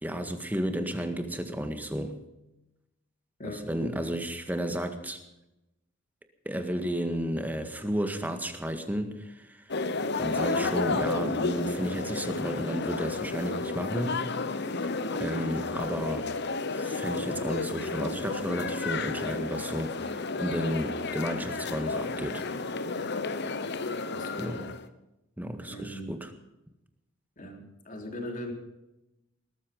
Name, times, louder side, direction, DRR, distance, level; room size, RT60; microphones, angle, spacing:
voice 1, 0.0-2.2 3.4-5.2 6.5-9.8 10.2-14.6 15.1-16.3 16.7-22.5 24.4-24.6 25.4-26.3, equal, 10° right, 7 dB, 1.8 m, -33 dB
sound 1, 9.7-24.8, left 3 dB, 60° left, 1.1 m, -32 dB
voice 2, 24.1-24.6 25.7-26.1 27.4-28.5, left 1 dB, 40° left, 2 dB, 3.6 m, -39 dB
20.0 x 13.5 x 5.4 m, 0.93 s
head